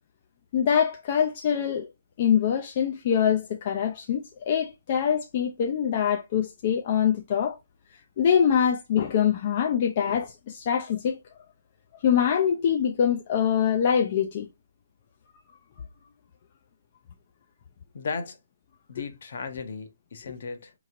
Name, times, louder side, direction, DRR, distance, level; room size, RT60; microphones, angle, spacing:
voice 1, 0.5-1.9 2.2-7.6 8.2-11.2 11.9-14.5, left 8 dB, 30° left, 0.4 m, -24 dB
voice 2, 17.9-18.4 18.9-20.7, left 5 dB, 50° left, 0.8 m, -35 dB
4.7 x 3.0 x 2.5 m
hypercardioid pair, 175°, 0 cm